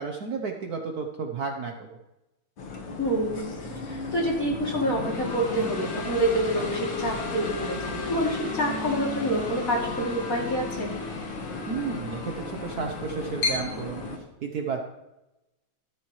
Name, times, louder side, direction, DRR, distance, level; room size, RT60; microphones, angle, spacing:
voice 1, 0.0-1.7 11.7-14.0 14.4-14.8, right 5 dB, 60° right, 3 dB, 1.1 m, -32 dB
sound 1, 2.6-14.2, left 3 dB, 70° left, 2.3 m, -33 dB
voice 2, 3.0-3.6 3.9-10.9, right 1 dB, 40° left, -3 dB, 3.2 m, -27 dB
14.0 x 12.5 x 3.2 m, 0.98 s
omnidirectional pair, 2.3 m